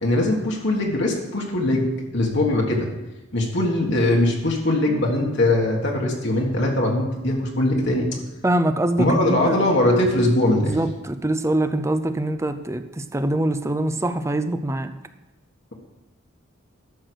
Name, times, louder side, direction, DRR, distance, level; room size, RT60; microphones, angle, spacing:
voice 1, 0.0-2.9 3.3-8.1 9.0-10.8, left 1 dB, 60° left, -1 dB, 1.6 m, -21 dB
voice 2, 8.4-9.6 10.6-14.9, right 1 dB, 15° right, 10 dB, 0.5 m, -24 dB
11.5 x 6.5 x 6.3 m, 1.0 s
head